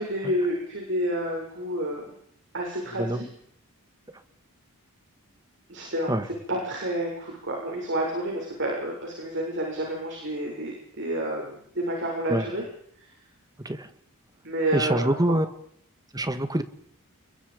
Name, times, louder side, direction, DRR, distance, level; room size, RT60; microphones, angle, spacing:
voice 1, 0.0-2.0 2.5-3.3 5.7-6.2 6.5-12.6 13.0-13.1 14.4-15.4, right 1 dB, 55° right, 0 dB, 7.2 m, -29 dB
voice 2, 14.7-15.5 16.1-16.6, right 1 dB, 15° right, 10 dB, 1.9 m, -24 dB
29.5 x 22.0 x 5.3 m, 0.68 s
head